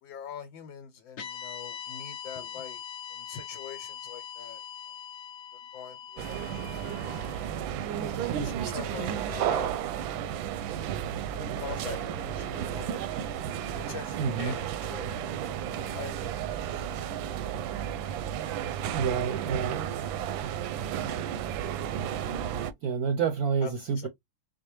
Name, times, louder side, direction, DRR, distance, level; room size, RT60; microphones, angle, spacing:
voice 1, 0.0-2.8 3.1-4.6 5.7-6.3 8.1-9.8 11.3-12.0 12.2-13.0 13.9-15.3 15.9-16.2 21.1-21.3 23.6-24.1, left 8 dB, 85° left, 1.5 m, -43 dB
sound 1, 1.2-9.5, left 8 dB, 70° left, 0.6 m, -43 dB
sound 2, 6.2-22.7, right 9 dB, 90° right, 1.3 m, -33 dB
sound 3, 11.2-17.3, left 6 dB, 45° left, 1.1 m, -52 dB
voice 2, 14.2-14.5 18.9-19.8 22.8-24.1, right 6 dB, 70° right, 0.9 m, -28 dB
4.8 x 2.2 x 3.0 m
omnidirectional pair, 2.1 m